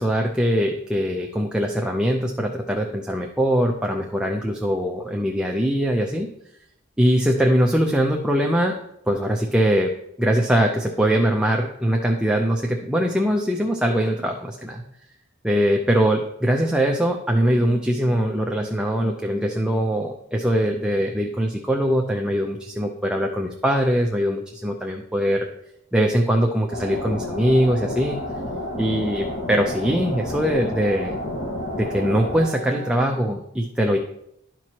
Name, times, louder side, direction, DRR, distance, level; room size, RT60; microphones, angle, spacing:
voice 1, 0.0-6.3 7.0-8.8 9.1-9.9 10.2-14.8 15.4-25.5 25.9-28.2 28.8-31.2 31.8-34.0, equal, 5° right, 1 dB, 0.5 m, -22 dB
sound 1, 26.7-33.0, left 1 dB, 45° left, 1.7 m, -30 dB
12.5 x 4.6 x 2.9 m, 0.77 s
head